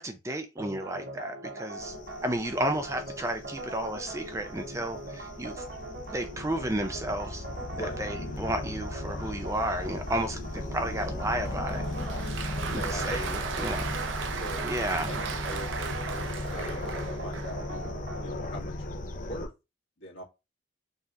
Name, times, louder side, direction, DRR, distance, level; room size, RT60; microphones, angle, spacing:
voice 1, 0.0-1.9 2.2-5.6 6.1-7.4 7.8-11.9 12.7-14.0 14.6-15.1, right 1 dB, 15° right, 0.5 m, -32 dB
sound 1, 0.6-18.5, right 1 dB, 55° right, 0.9 m, -41 dB
sound 2, 1.8-19.5, left 1 dB, 45° left, 0.6 m, -37 dB
voice 2, 7.7-8.0 12.7-13.8 14.4-14.8 15.1-17.0 17.2-19.5 20.0-20.2, equal, 85° left, 1.7 m, -42 dB
Applause, 11.5-17.6, right 6 dB, 85° right, 0.6 m, -36 dB
5.4 x 3.0 x 2.5 m
head